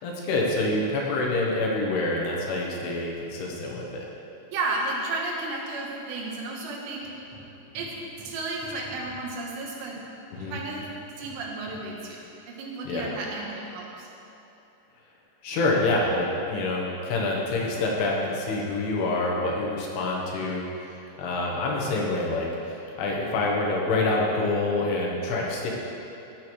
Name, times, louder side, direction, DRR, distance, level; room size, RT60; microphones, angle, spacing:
voice 1, 0.0-4.0 10.3-10.6 12.9-13.1 15.4-20.6 21.2-25.7, left 2 dB, 75° left, -2 dB, 3.1 m, -26 dB
voice 2, 4.5-7.0 7.7-7.9 8.2-10.0 10.5-10.9 11.2-12.2 12.5-14.1, right 2 dB, 85° right, -2 dB, 3.4 m, -32 dB
sound 1, 7.0-10.1 10.4-12.0, equal, 70° right, 1.3 m, -48 dB
13.5 x 8.3 x 3.1 m, 2.9 s
omnidirectional pair, 4.9 m